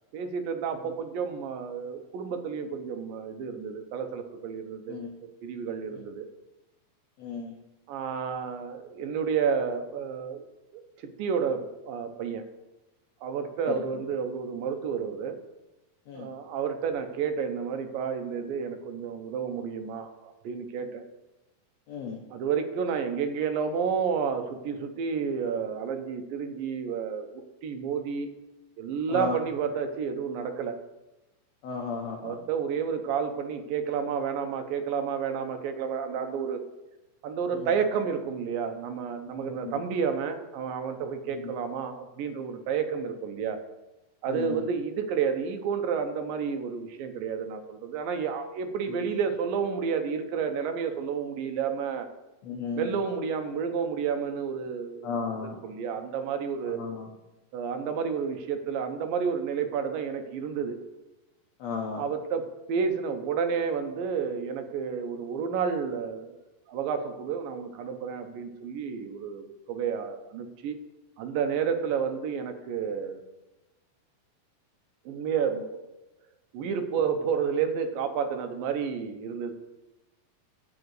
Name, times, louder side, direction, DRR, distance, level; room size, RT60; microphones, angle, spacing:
voice 1, 0.1-5.0 5.4-6.3 7.9-10.4 11.2-12.4 13.2-15.4 16.1-21.0 22.3-27.3 27.6-28.3 28.8-30.8 32.2-36.6 37.2-43.6 44.2-52.1 52.8-55.1 55.6-56.8 57.5-60.8 62.0-66.4 66.7-70.8 71.2-73.2 75.1-75.8 76.5-79.5, right 6 dB, 75° right, 6 dB, 2.5 m, -30 dB
voice 2, 7.2-7.6 13.7-14.0 16.1-16.3 21.9-22.2 29.1-29.5 31.6-32.4 37.5-37.7 39.4-39.8 41.3-41.5 44.3-44.7 48.9-49.1 52.4-53.0 55.0-55.6 56.7-57.1 61.6-62.0, left 5 dB, 70° left, 0 dB, 1.6 m, -35 dB
10.5 x 5.0 x 8.1 m, 1.0 s
omnidirectional pair, 4.3 m